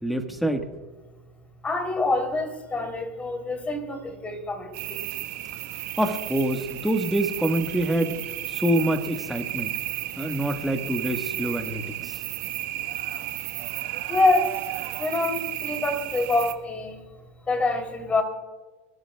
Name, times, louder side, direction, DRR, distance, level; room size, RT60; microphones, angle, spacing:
voice 1, 0.0-0.7 6.0-8.2 8.5-9.7 10.2-12.2, right 1 dB, ahead, 1.5 m, -26 dB
voice 2, 1.6-4.0 4.2-5.0 14.1-14.5 15.0-16.9 17.5-18.2, left 2 dB, 15° left, 3.4 m, -25 dB
sound 1, 4.7-16.5, right 15 dB, 55° right, 1.5 m, -33 dB
26.5 x 13.0 x 2.3 m
hypercardioid pair, 110°, 7 cm